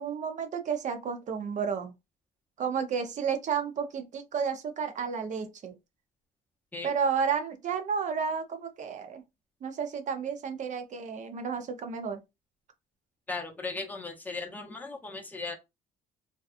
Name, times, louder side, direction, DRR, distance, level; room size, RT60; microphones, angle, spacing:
voice 1, 0.0-1.9 2.6-5.8 6.8-9.2 9.6-12.2, right 6 dB, 45° right, 0.6 m, -31 dB
voice 2, 13.3-15.5, left 3 dB, 10° left, 0.6 m, -37 dB
2.7 x 2.2 x 2.4 m
cardioid pair, 110°, 17 cm